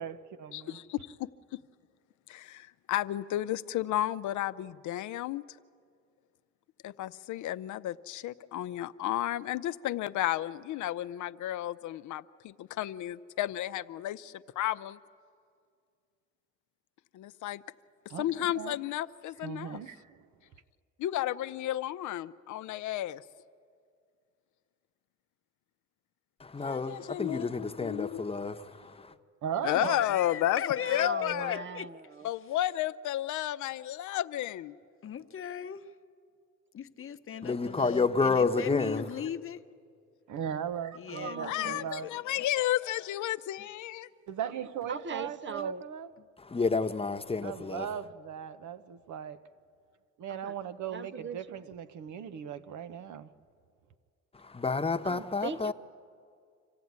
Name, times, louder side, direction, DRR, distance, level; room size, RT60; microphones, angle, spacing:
voice 1, 0.0-0.8 18.1-18.8 19.4-20.2 29.4-30.1 40.3-42.1 44.3-46.1 47.4-49.4 50.2-53.3, right 8 dB, 75° right, 1.0 m, -38 dB
voice 2, 0.5-1.6 2.3-5.4 6.8-15.0 17.1-17.6 18.2-19.8 21.0-23.2 26.6-28.2 29.6-31.6 32.2-34.7 41.4-44.1, left 13 dB, 75° left, 0.6 m, -32 dB
voice 3, 26.4-29.1 37.4-39.1 46.4-47.9 54.3-55.7, left 4 dB, 20° left, 1.0 m, -30 dB
voice 4, 29.7-31.9 35.0-35.9 36.7-39.6 40.9-42.4, left 8 dB, 45° left, 0.9 m, -39 dB
voice 5, 30.8-32.3 41.1-41.8 44.9-45.9 50.3-50.5 50.9-51.8 55.0-55.7, right 4 dB, 40° right, 0.6 m, -39 dB
26.0 x 15.0 x 9.5 m
cardioid pair, 90°, 30 cm